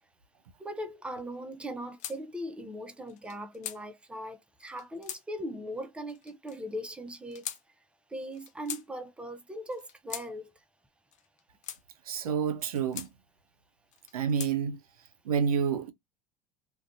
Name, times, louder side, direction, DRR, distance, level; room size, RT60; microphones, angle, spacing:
voice 1, 0.6-7.4 8.1-10.5, equal, 5° right, 0.5 m, -39 dB
sound 1, 2.0-2.2 3.1-3.8 4.6-5.2 6.1-6.6 7.3-7.6 8.3-8.9 9.7-10.3 11.1-11.8 12.6-13.1 13.9-14.5, left 10 dB, 40° left, 0.5 m, -41 dB
voice 2, 12.1-13.1 14.1-14.8 15.2-15.9, right 7 dB, 90° right, 0.4 m, -28 dB
2.5 x 2.2 x 2.4 m
hypercardioid pair, 80°, 18 cm